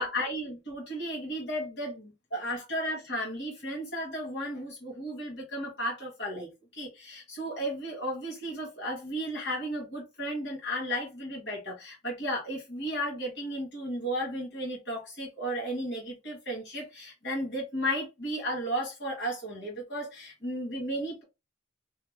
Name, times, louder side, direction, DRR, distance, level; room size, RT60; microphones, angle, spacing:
voice 1, 0.0-21.2, equal, 60° left, 1.8 m, -34 dB
5.5 x 2.0 x 3.5 m
head